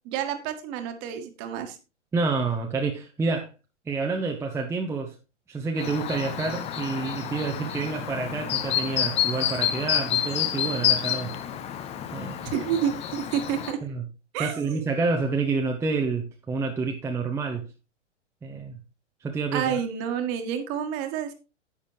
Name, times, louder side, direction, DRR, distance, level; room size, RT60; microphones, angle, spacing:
voice 1, 0.1-1.8 12.4-13.8 14.3-14.8 19.5-21.3, right 9 dB, 35° right, 1.7 m, -29 dB
voice 2, 2.1-3.5 3.9-5.1 5.5-11.3 12.1-12.4 13.8-14.0 14.4-17.6 18.4-18.8 19.2-19.8, right 4 dB, 5° right, 0.9 m, -28 dB
Chirp tweet, 5.8-13.7, left 10 dB, 15° left, 0.7 m, -29 dB
10.5 x 8.4 x 3.2 m
figure-of-eight pair, 110°, 36 cm